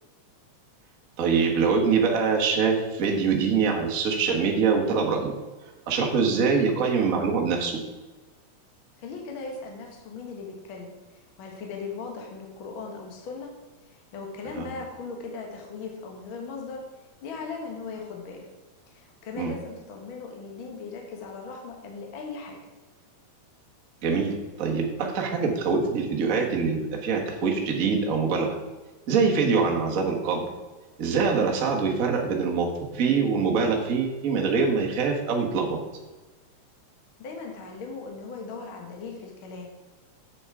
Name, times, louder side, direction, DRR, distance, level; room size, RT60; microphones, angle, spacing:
voice 1, 1.2-5.3 5.9-7.8 14.6-14.7 19.4-19.5 24.0-28.5 29.1-30.4 31.0-35.8, right 5 dB, 45° right, 1 dB, 1.0 m, -24 dB
voice 2, 9.0-13.5 13.8-18.5 18.9-22.6 37.2-39.8, left 4 dB, 50° left, 1 dB, 1.8 m, -38 dB
8.0 x 6.8 x 4.7 m, 1.2 s
omnidirectional pair, 3.3 m